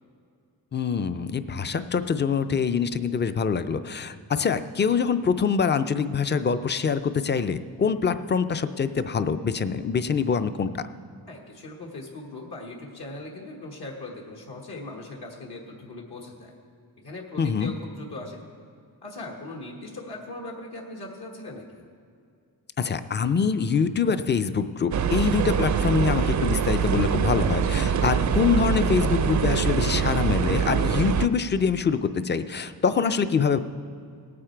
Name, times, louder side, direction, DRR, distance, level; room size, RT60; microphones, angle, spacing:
voice 1, 0.7-10.8 17.4-17.7 22.8-33.6, left 6 dB, 30° left, 12 dB, 0.4 m, -25 dB
voice 2, 11.3-16.6 17.0-18.4 19.0-21.8 32.8-33.1, left 2 dB, 70° left, -2 dB, 1.6 m, -39 dB
sound 1, 24.9-31.3, right 7 dB, 45° right, 0.4 m, -24 dB
18.0 x 8.6 x 4.5 m, 2.4 s
wide cardioid pair, 120°, 40 cm